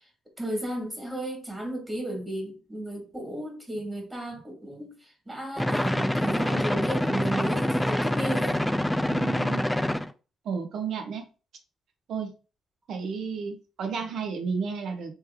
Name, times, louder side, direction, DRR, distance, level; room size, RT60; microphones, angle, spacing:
voice 1, 0.4-8.6, right 1 dB, 15° right, 1.8 m, -34 dB
sound 1, 5.6-10.1, left 1 dB, 5° left, 0.3 m, -26 dB
voice 2, 9.0-9.6 10.4-11.2 12.1-12.3 12.9-15.1, right 5 dB, 70° right, 0.9 m, -32 dB
3.2 x 3.2 x 3.5 m
cardioid pair, 90°, 0 cm